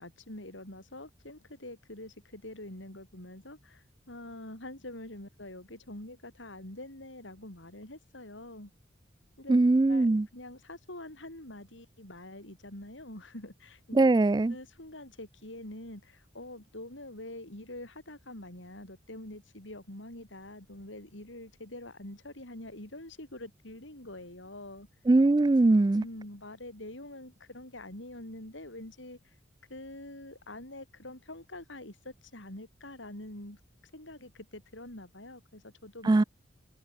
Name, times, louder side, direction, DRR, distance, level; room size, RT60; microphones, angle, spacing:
voice 1, 0.0-8.7 9.4-9.6 9.9-14.0 14.5-24.9 25.9-29.3 29.7-33.6 33.9-36.1, left 1 dB, 75° left, 6.2 m, -45 dB
voice 2, 9.5-10.3 13.9-14.5 25.1-26.0 36.0-36.2, right 2 dB, 20° right, 0.3 m, -21 dB
head